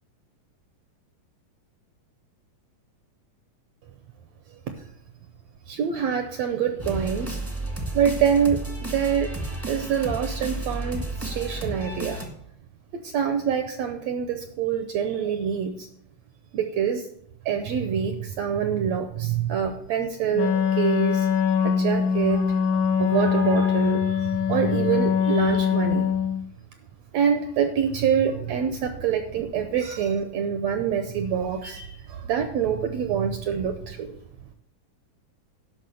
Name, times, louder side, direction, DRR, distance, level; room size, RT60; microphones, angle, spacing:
voice 1, 5.7-7.4 7.9-9.3 9.7-12.2 12.9-15.9 16.5-17.0 17.4-21.3 21.6-22.5 23.0-26.1 27.1-34.2, right 7 dB, 75° right, 7 dB, 1.6 m, -26 dB
sound 1, 6.8-12.3, right 2 dB, 10° right, 0.7 m, -32 dB
Wind instrument woodwind instrument, 20.3-26.4, left 7 dB, 65° left, 2.6 m, -23 dB
12.0 x 5.8 x 7.0 m, 0.70 s
omnidirectional pair, 3.8 m